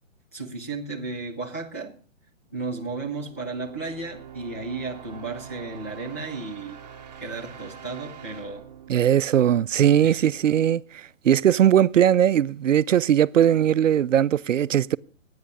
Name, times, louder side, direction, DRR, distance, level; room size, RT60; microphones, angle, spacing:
voice 1, 0.3-1.9 2.5-6.8 7.2-8.6 10.0-10.3, right 3 dB, 10° left, 0.5 m, -34 dB
sound 1, 2.6-10.4, right 8 dB, 35° right, 1.1 m, -45 dB
voice 2, 8.9-15.0, right 10 dB, 75° right, 0.6 m, -19 dB
12.5 x 9.5 x 6.4 m
hypercardioid pair, 170°, 39 cm